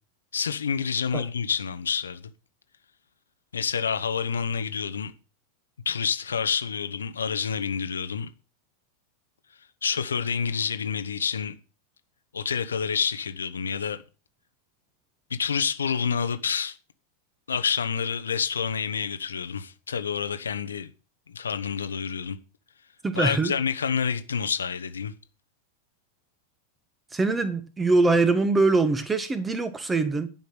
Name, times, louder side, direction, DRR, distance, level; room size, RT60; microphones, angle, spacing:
voice 1, 0.3-2.2 3.5-5.1 5.8-8.3 9.8-11.5 12.3-14.0 15.3-16.8 17.5-20.9 21.3-22.4 23.1-25.1, left 6 dB, 70° left, 1.1 m, -28 dB
voice 2, 23.0-23.5 27.1-30.3, right 3 dB, 15° right, 1.5 m, -23 dB
11.0 x 5.8 x 7.7 m
figure-of-eight pair, 90°, 0 cm